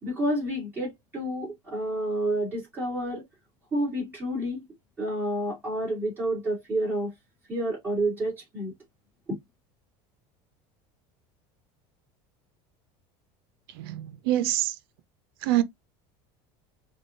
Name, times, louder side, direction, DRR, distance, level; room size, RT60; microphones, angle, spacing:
voice 1, 0.0-3.2 3.7-4.6 5.0-7.1 7.5-8.7, right 1 dB, 15° right, 2.3 m, -29 dB
voice 2, 13.8-14.7 15.4-15.6, right 14 dB, 80° right, 0.6 m, -25 dB
4.8 x 2.4 x 2.5 m
cardioid pair, 165°, 12 cm